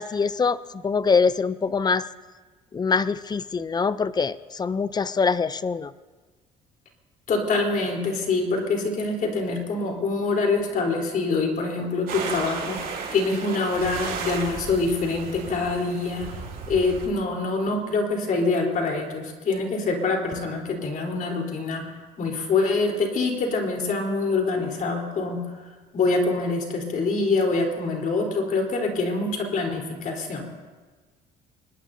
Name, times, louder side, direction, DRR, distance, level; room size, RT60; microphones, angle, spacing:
voice 1, 0.0-2.1 2.7-5.9, left 5 dB, 25° left, 15 dB, 0.5 m, -24 dB
voice 2, 7.3-16.3 16.7-21.8 22.2-25.4 25.9-30.5, left 3 dB, 55° left, 1 dB, 3.9 m, -25 dB
sound 1, 12.1-17.1, right 5 dB, 65° right, 5.6 m, -34 dB
25.5 x 20.5 x 2.7 m, 1.4 s
cardioid pair, 110°, 17 cm